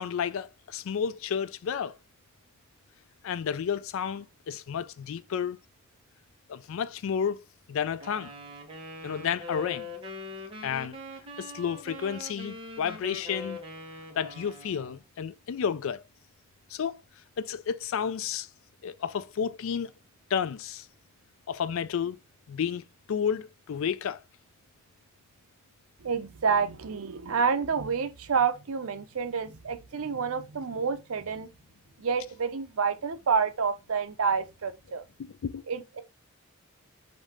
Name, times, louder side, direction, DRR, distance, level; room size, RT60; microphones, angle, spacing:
voice 1, 0.0-2.0 3.2-5.6 6.5-7.4 7.7-8.3 9.0-9.9 10.6-11.0 11.4-13.6 14.2-16.0 16.7-17.0 17.4-18.5 18.8-19.9 20.3-20.9 21.5-22.2 22.5-22.8 23.1-24.2 35.4-35.6, left 7 dB, 65° left, 0.4 m, -31 dB
Wind instrument woodwind instrument, 8.0-15.0, left 2 dB, 25° right, 1.2 m, -42 dB
voice 2, 26.0-31.5 32.0-35.0 35.7-36.0, right 5 dB, 80° right, 0.6 m, -28 dB
5.2 x 2.7 x 3.5 m
head